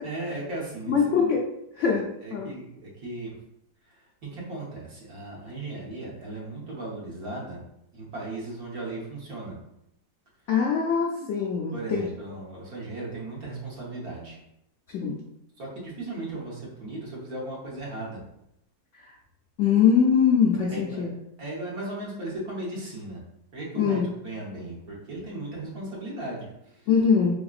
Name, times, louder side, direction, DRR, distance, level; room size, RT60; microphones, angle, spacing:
voice 1, 0.0-1.2 1.8-3.3 3.9-7.6 7.9-9.5 11.7-14.4 15.6-18.2 20.7-21.0 21.4-23.2 23.5-26.9, right 2 dB, 65° right, -4 dB, 1.6 m, -36 dB
voice 2, 0.9-1.4 1.8-2.5 10.5-12.0 14.9-15.2 19.0-19.1 19.6-21.1 23.8-24.1 26.9-27.3, left 6 dB, 75° left, -2 dB, 0.6 m, -22 dB
3.6 x 3.4 x 2.4 m, 0.80 s
omnidirectional pair, 1.7 m